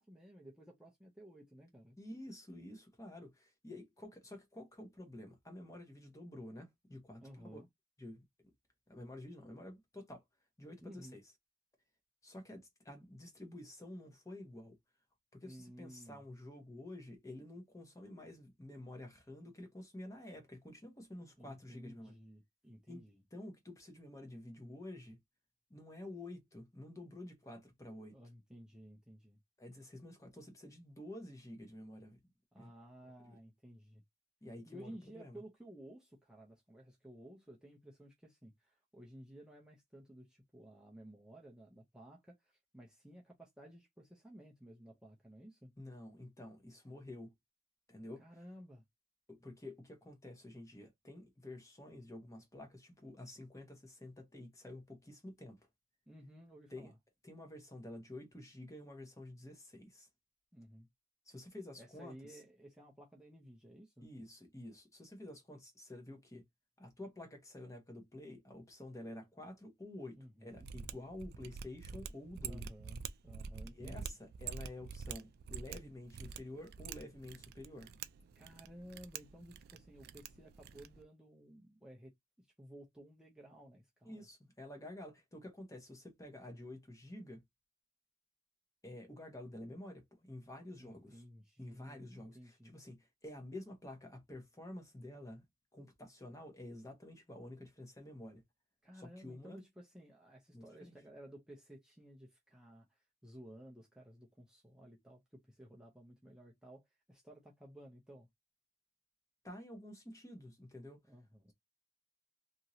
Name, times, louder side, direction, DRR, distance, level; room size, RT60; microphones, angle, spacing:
voice 1, 0.0-2.0 7.2-7.7 10.8-11.2 15.4-16.3 21.4-23.2 28.1-29.4 32.5-34.0 34.7-45.7 48.2-48.8 56.1-57.0 60.5-60.9 61.8-64.1 70.2-70.7 72.4-74.1 78.4-82.1 82.4-84.3 90.8-92.7 98.8-108.3 111.1-111.5, equal, 5° right, 0.5 m, -55 dB
voice 2, 2.0-7.2 7.5-7.6 8.0-8.2 8.9-10.2 10.6-11.2 12.2-14.8 15.3-22.1 22.9-23.0 23.3-25.2 25.7-28.2 29.6-32.2 32.6-32.7 33.2-33.3 34.4-35.4 45.8-47.3 47.9-48.2 49.3-55.6 56.7-56.9 57.2-60.1 61.3-62.4 64.0-66.4 66.8-72.7 73.7-77.9 84.0-87.4 88.8-91.2 91.6-95.4 95.7-98.4 98.9-99.6 100.5-101.0 109.4-111.0, left 1 dB, 20° left, 0.9 m, -50 dB
Mechanisms, 70.5-81.0, right 6 dB, 60° right, 0.3 m, -47 dB
2.9 x 2.6 x 2.6 m
head